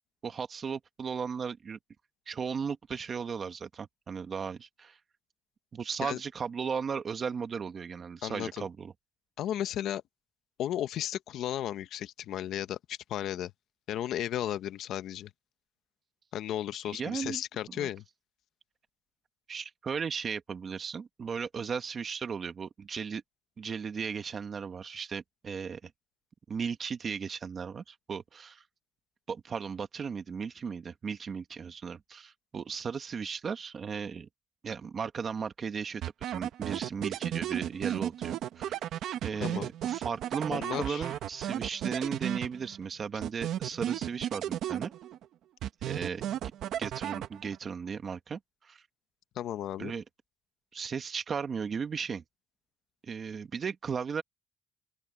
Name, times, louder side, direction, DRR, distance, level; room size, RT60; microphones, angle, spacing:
voice 1, 0.2-1.8 2.3-5.0 5.7-8.9 16.9-17.4 17.7-17.9 19.5-23.2 23.6-25.9 26.5-28.6 29.3-34.3 34.6-38.8 39.2-44.9 45.8-46.3 46.8-48.8 49.8-50.0 50.7-52.2 53.0-54.2, right 6 dB, 35° right, 1.6 m, -36 dB
voice 2, 8.2-8.7 9.4-10.0 10.6-13.5 13.9-15.3 16.3-18.0 39.4-39.7 40.5-41.1 49.3-49.9, left 11 dB, 65° left, 1.0 m, -34 dB
sound 1, 36.0-42.9 43.2-45.2 45.6-47.7, right 11 dB, 65° right, 1.3 m, -34 dB
open air
cardioid pair, 135°, 0 cm